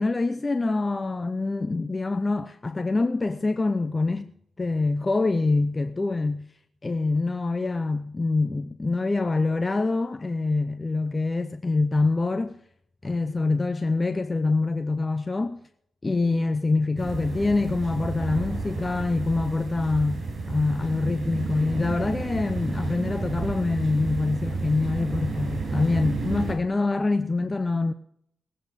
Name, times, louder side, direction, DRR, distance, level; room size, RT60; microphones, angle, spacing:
voice 1, 0.0-4.3 4.6-6.5 6.8-12.6 13.0-15.6 16.0-27.9, left 3 dB, 25° left, 0.7 m, -25 dB
sound 1, 17.0-26.6, right 3 dB, 55° right, 6.7 m, -31 dB
19.0 x 8.7 x 5.1 m
cardioid pair, 100°, 0 cm